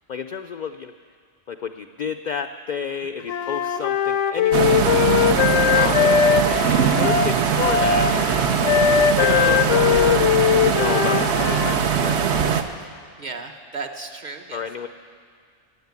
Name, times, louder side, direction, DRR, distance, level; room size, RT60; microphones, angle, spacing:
voice 1, 0.1-0.9 1.5-5.1 5.7-6.1 6.9-8.1 9.1-12.9 14.5-14.9, left 6 dB, 65° left, 8 dB, 0.4 m, -30 dB
Wind instrument woodwind instrument, 3.3-11.8, left 9 dB, 85° left, 1.0 m, -20 dB
sound 1, 4.5-12.6, right 7 dB, 65° right, 1.0 m, -21 dB
voice 2, 5.7-6.0 8.6-8.9 13.2-14.6, right 4 dB, 40° right, 4 dB, 1.0 m, -35 dB
16.0 x 8.0 x 9.5 m, 2.1 s
omnidirectional pair, 1.2 m